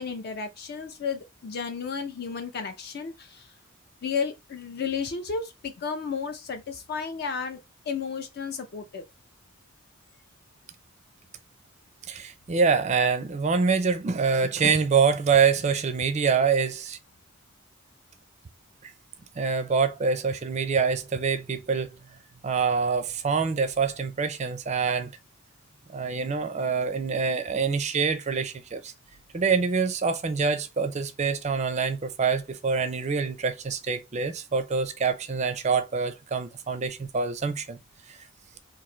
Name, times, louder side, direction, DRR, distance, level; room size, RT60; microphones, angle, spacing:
voice 1, 0.0-3.5 4.0-7.6 7.9-9.0, left 5 dB, 45° left, 0.4 m, -33 dB
voice 2, 12.1-17.0 18.8-18.9 19.4-21.9 22.4-25.1 25.9-28.9 29.3-37.8 38.1-38.3, right 5 dB, 30° right, 0.4 m, -25 dB
3.0 x 2.5 x 3.6 m
head